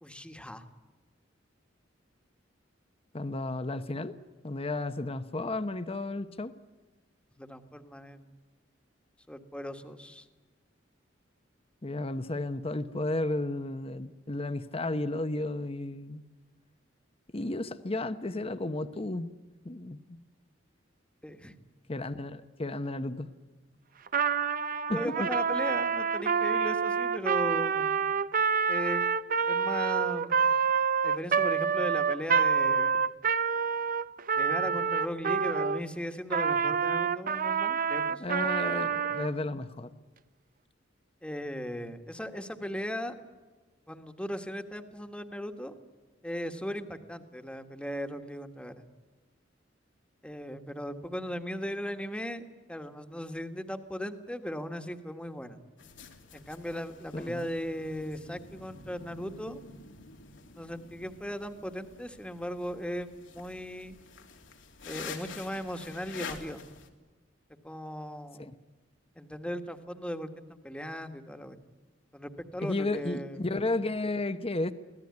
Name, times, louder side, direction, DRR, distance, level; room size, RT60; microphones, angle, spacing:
voice 1, 0.0-0.6 7.4-8.2 9.3-10.2 21.2-21.5 24.9-27.9 28.7-29.1 29.5-30.5 31.0-33.0 34.4-38.2 41.2-43.2 43.9-45.7 46.2-48.8 50.2-55.6 56.3-59.6 60.5-64.0 64.8-66.6 67.6-68.5 69.2-71.6 72.1-73.5, equal, 5° left, 8 dB, 1.5 m, -37 dB
voice 2, 3.1-4.1 4.4-6.5 11.8-16.2 17.3-19.3 19.6-20.2 21.9-23.3 24.9-25.3 38.2-39.9 57.1-57.5 68.4-68.5 72.6-74.7, left 2 dB, 30° left, 11 dB, 0.9 m, -33 dB
Trumpet, 24.1-35.8 36.3-39.3, right 6 dB, 50° right, 0.8 m, -27 dB
sound 1, 55.8-66.9, left 5 dB, 85° left, 3.0 m, -47 dB
24.5 x 17.0 x 9.6 m, 1.3 s
head